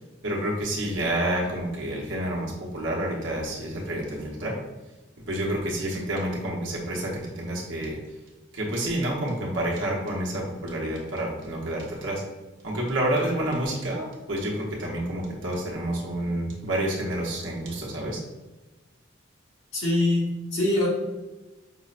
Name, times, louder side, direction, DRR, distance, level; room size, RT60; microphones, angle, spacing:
voice 1, 0.2-4.6 5.3-8.0 8.5-12.2 12.6-18.2, right 1 dB, 70° right, -3 dB, 0.8 m, -29 dB
voice 2, 19.7-20.9, left 2 dB, 80° left, -5 dB, 1.3 m, -24 dB
5.5 x 2.0 x 2.4 m, 1.1 s
head